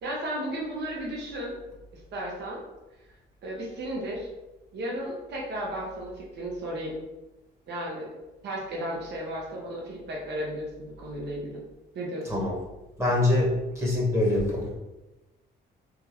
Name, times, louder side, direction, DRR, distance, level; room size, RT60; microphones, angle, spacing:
voice 1, 0.0-1.6 2.1-2.6 3.4-4.3 4.7-7.0 7.7-8.1 8.4-11.6 11.9-12.3, right 1 dB, 60° right, -3 dB, 0.9 m, -34 dB
voice 2, 13.0-14.8, left 2 dB, 15° right, -4 dB, 1.1 m, -24 dB
3.6 x 2.3 x 3.0 m, 1.0 s
cardioid pair, 90°, 20 cm